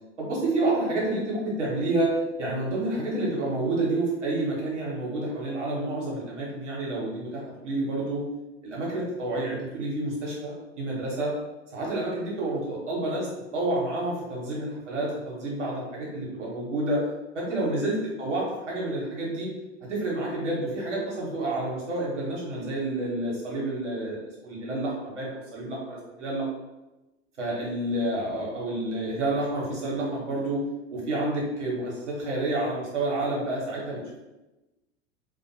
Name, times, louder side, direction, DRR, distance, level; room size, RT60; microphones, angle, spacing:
voice 1, 0.2-2.1 2.4-8.2 8.6-11.3 11.7-13.3 13.5-17.0 17.3-19.5 19.9-26.5 27.4-30.6 30.9-34.2, right 2 dB, 90° right, -4 dB, 1.0 m, -29 dB
2.6 x 2.1 x 2.6 m, 1.0 s
hypercardioid pair, 90°, 35 cm